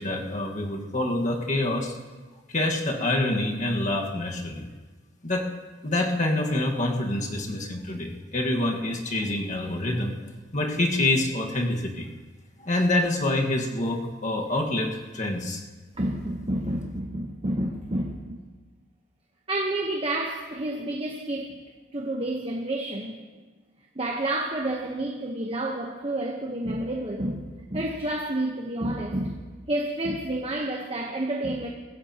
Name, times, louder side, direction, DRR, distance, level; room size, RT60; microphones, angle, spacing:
voice 1, 0.0-1.9 2.5-4.7 5.2-5.5 5.8-10.2 10.5-12.1 12.6-15.6, left 1 dB, 40° left, 1 dB, 1.6 m, -26 dB
voice 2, 15.9-18.4 19.5-21.6 21.9-23.2 23.9-29.4 29.7-31.7, right 1 dB, 30° right, 1 dB, 1.0 m, -29 dB
23.5 x 15.0 x 2.9 m, 1.3 s
head